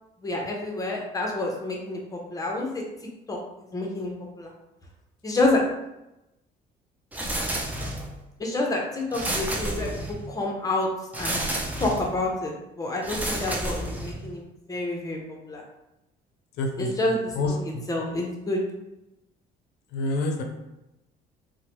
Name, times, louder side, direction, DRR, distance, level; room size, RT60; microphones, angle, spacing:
voice 1, 0.2-2.8 3.3-3.4 3.7-4.5 5.2-5.6 8.4-10.9 11.2-11.4 11.8-15.2 15.5-15.6 16.8-18.6, left 2 dB, 20° left, -1 dB, 0.7 m, -28 dB
sound 1, 7.1-8.2 9.1-10.3 11.1-12.2 13.0-14.3, right 1 dB, 10° right, 0.4 m, -30 dB
voice 2, 16.6-17.8 19.9-20.4, left 2 dB, 80° left, 3 dB, 0.5 m, -28 dB
3.0 x 2.1 x 2.9 m, 0.92 s
cardioid pair, 110°, 17 cm